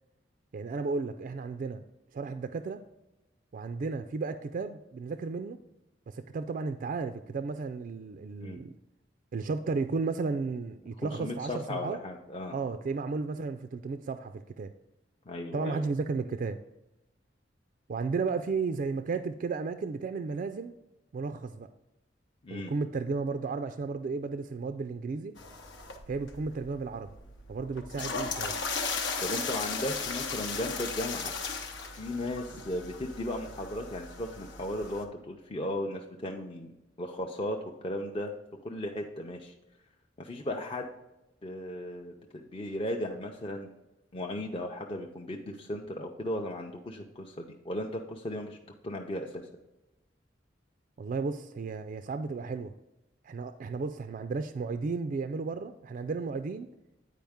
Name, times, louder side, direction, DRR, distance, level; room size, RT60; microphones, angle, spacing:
voice 1, 0.5-1.8 2.1-2.8 3.5-5.6 6.1-8.7 9.3-12.0 12.5-14.7 15.5-16.6 17.9-20.8 21.1-21.7 22.5-25.3 26.1-27.1 27.5-28.6 51.0-52.7 53.2-56.7, right 4 dB, 50° right, 8 dB, 0.3 m, -33 dB
voice 2, 11.0-12.5 15.3-15.9 22.4-22.7 29.2-31.3 31.9-37.6 37.8-38.3 38.6-39.5 40.2-40.9 41.4-43.7 44.1-48.6 48.8-49.4, left 1 dB, 30° left, 1 dB, 0.5 m, -36 dB
sound 1, 25.4-35.0, left 4 dB, 85° left, 0.9 m, -37 dB
9.1 x 4.7 x 3.5 m, 0.95 s
head